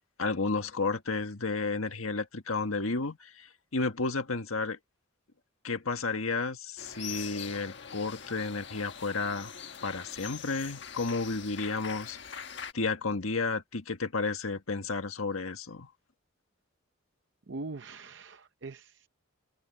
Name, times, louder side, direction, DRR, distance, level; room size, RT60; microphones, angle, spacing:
voice 1, 0.2-4.8 5.6-9.5 9.8-12.2 12.7-15.9, left 3 dB, 90° left, 1.7 m, -32 dB
sound 1, 6.8-12.7, left 7 dB, 55° left, 1.6 m, -43 dB
voice 2, 17.5-19.1, right 3 dB, 60° right, 0.7 m, -42 dB
head